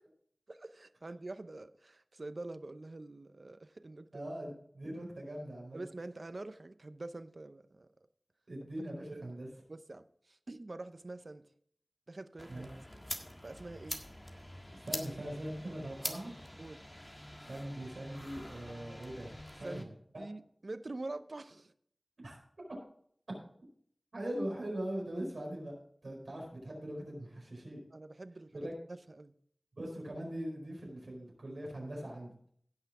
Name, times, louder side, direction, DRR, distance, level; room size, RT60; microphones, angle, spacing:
voice 1, 0.5-4.2 5.7-7.9 9.1-9.3 9.7-11.5 12.1-12.7 13.4-14.0 16.6-16.8 19.6-19.9 20.2-21.7 27.9-29.3, right 2 dB, 65° right, 12 dB, 0.6 m, -46 dB
voice 2, 4.1-5.8 8.5-9.5 12.5-12.8 14.8-16.3 17.5-19.3 19.6-19.9 20.1-20.3 22.2-22.4 24.1-25.7 26.0-27.8 28.5-28.7 29.8-32.3, right 1 dB, 85° right, -1 dB, 4.5 m, -41 dB
sound 1, 12.4-19.8, left 1 dB, 20° left, 1.6 m, -45 dB
16.5 x 5.8 x 4.8 m, 0.64 s
wide cardioid pair, 40°, 0 cm